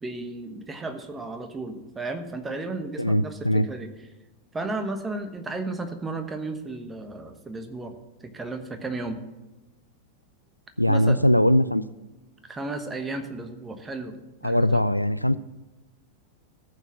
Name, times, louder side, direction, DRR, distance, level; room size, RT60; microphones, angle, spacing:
voice 1, 0.0-3.9 4.5-7.9 8.2-9.2 10.9-11.2 12.5-14.9, right 2 dB, 15° right, 7 dB, 1.2 m, -34 dB
voice 2, 3.0-3.7 10.8-11.8 14.4-15.4, equal, 90° left, 15 dB, 0.3 m, -21 dB
14.0 x 5.9 x 5.9 m, 1.1 s
figure-of-eight pair, 90°, 0 cm